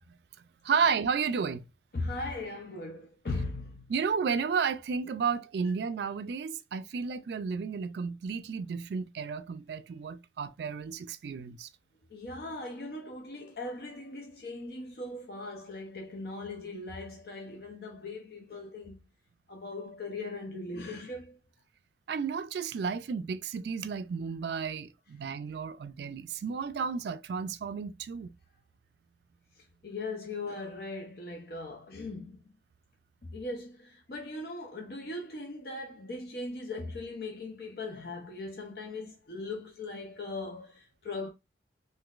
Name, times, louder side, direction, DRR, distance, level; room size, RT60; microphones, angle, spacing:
voice 1, 0.6-1.6 3.9-11.7 22.1-28.3, right 6 dB, 70° right, 0.3 m, -32 dB
voice 2, 1.9-3.9 12.1-19.0 19.5-21.4 29.8-32.4 33.2-41.3, left 2 dB, 60° left, 0.6 m, -39 dB
3.7 x 2.5 x 2.4 m
head